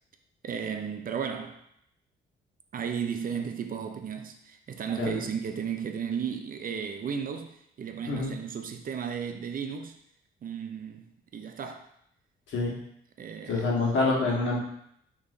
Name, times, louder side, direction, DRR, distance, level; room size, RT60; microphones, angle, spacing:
voice 1, 0.4-1.6 2.7-10.0 10.4-11.9 13.2-13.7, right 7 dB, 45° right, 0.5 m, -34 dB
voice 2, 13.4-14.6, left 3 dB, 70° left, 1.5 m, -26 dB
6.1 x 3.0 x 2.7 m
cardioid pair, 90°, 20 cm